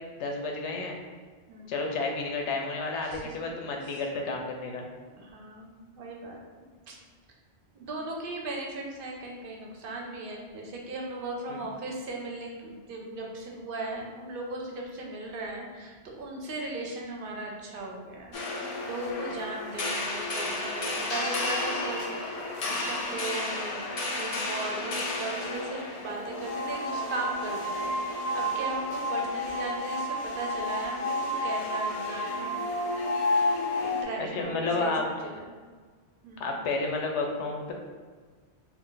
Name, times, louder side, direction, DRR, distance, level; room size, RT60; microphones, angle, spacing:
voice 1, 0.2-1.0 1.7-4.8 11.5-11.6 34.2-35.1 36.4-37.7, left 3 dB, 90° left, 1 dB, 0.9 m, -31 dB
voice 2, 3.0-3.4 3.8-4.0 5.1-7.0 7.7-18.4 18.8-23.9 24.2-32.5 33.3-35.5 36.2-36.5, right 2 dB, 60° right, 0 dB, 0.7 m, -37 dB
sound 1, 18.3-34.0, left 1 dB, 55° left, 0.4 m, -31 dB
2.4 x 2.4 x 3.8 m, 1.5 s
omnidirectional pair, 1.1 m